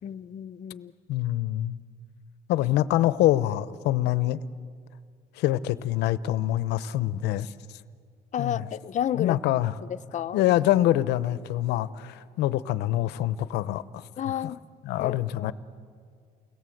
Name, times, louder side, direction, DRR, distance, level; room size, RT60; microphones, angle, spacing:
voice 1, 0.0-0.9 8.3-9.4 9.9-10.4 14.2-14.6 15.0-15.5, left 10 dB, 45° left, 13 dB, 0.7 m, -31 dB
voice 2, 1.1-1.8 2.5-4.4 5.4-7.5 8.4-8.7 9.2-9.7 10.3-14.0 14.4-14.5 14.8-15.5, left 14 dB, 85° left, 16 dB, 0.8 m, -25 dB
29.5 x 21.0 x 7.8 m, 2.2 s
cardioid pair, 110°, 17 cm